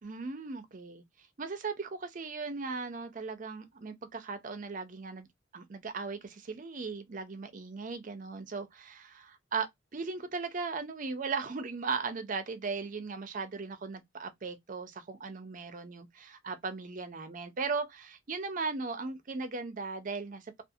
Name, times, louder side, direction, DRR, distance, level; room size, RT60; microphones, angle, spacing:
voice 1, 0.0-1.0 1.4-5.3 5.5-20.6, right 4 dB, 45° right, 0.5 m, -37 dB
2.4 x 2.4 x 2.6 m
head